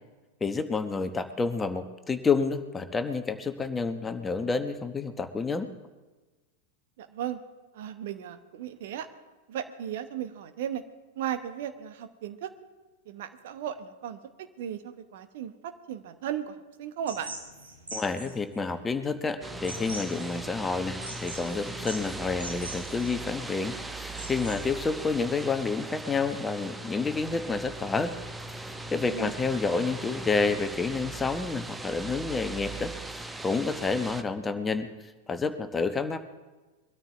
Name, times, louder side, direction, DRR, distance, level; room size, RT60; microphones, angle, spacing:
voice 1, 0.4-5.7 17.9-28.1 28.5-34.9 35.3-36.2, left 4 dB, 15° left, 9 dB, 1.0 m, -29 dB
voice 2, 7.0-7.4 7.7-9.1 9.5-10.8 11.1-12.5 13.1-14.2 14.6-17.3 29.1-29.4, right 9 dB, 55° right, 9 dB, 1.1 m, -36 dB
sound 1, 17.1-24.9, right 2 dB, 75° right, 3.5 m, -43 dB
sound 2, 19.4-34.2, right 2 dB, 5° right, 0.8 m, -39 dB
22.5 x 13.0 x 3.5 m, 1.2 s
figure-of-eight pair, 90°, 0 cm